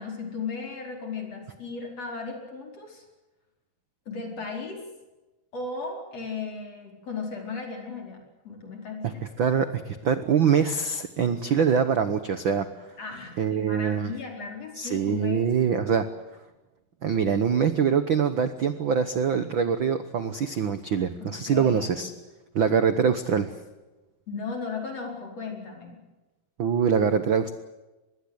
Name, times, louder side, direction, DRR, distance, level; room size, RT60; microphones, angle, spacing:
voice 1, 0.0-3.0 4.1-4.8 5.5-9.2 13.0-15.5 21.2-22.1 24.3-26.0, left 4 dB, 45° left, 1 dB, 5.7 m, -36 dB
voice 2, 9.4-12.7 13.4-14.1 14.8-16.1 17.0-22.1 22.5-23.5 26.6-27.6, right 7 dB, 75° right, 10 dB, 1.1 m, -24 dB
25.0 x 21.0 x 8.0 m, 1.1 s
omnidirectional pair, 3.9 m